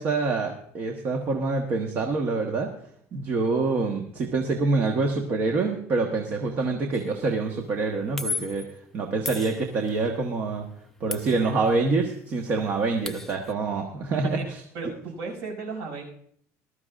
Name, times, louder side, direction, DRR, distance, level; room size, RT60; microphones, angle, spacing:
voice 1, 0.0-2.7 3.1-8.6 8.9-10.6 11.0-14.6, right 3 dB, 35° right, 2 dB, 1.3 m, -26 dB
sound 1, 6.9-7.2 8.2-8.7 9.3-10.1 11.1-12.0 12.3-12.4 12.6-13.5, left 4 dB, 5° left, 0.6 m, -35 dB
voice 2, 14.1-14.4 14.7-16.0, right 4 dB, 55° right, 1 dB, 6.2 m, -34 dB
20.0 x 13.0 x 2.5 m, 0.64 s
cardioid pair, 170°, 6 cm